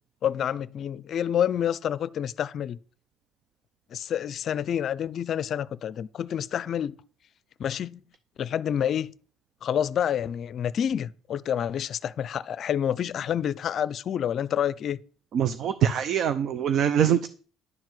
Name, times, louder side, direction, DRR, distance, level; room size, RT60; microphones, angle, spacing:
voice 1, 0.2-2.8 3.9-7.0 7.6-8.0 8.4-9.1 9.6-15.0, left 9 dB, 45° left, 0.5 m, -28 dB
voice 2, 15.3-17.3, right 9 dB, 50° right, 0.6 m, -23 dB
11.0 x 4.6 x 7.8 m
cardioid pair, 130°, 0 cm